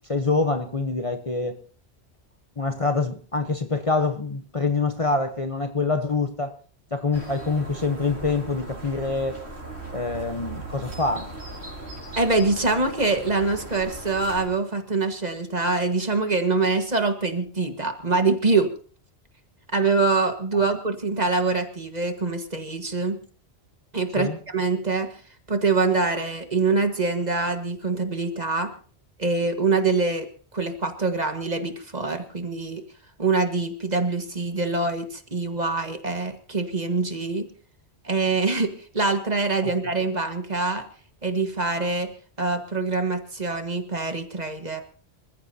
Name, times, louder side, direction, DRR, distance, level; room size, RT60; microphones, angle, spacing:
voice 1, 0.1-1.6 2.6-6.6 6.9-9.4 9.9-11.3 20.5-20.6 24.2-24.4 39.6-39.7, left 3 dB, 30° left, 7 dB, 1.0 m, -25 dB
sound 1, 7.1-14.5, right 2 dB, 80° right, 5.3 m, -38 dB
voice 2, 12.1-18.7 19.7-23.2 23.9-25.1 25.5-28.7 29.2-30.3 30.5-32.8 33.2-37.5 38.0-40.8 41.2-42.1 42.4-44.8, right 3 dB, 40° right, 6 dB, 1.7 m, -24 dB
26.5 x 14.5 x 2.8 m, 0.41 s
omnidirectional pair, 1.1 m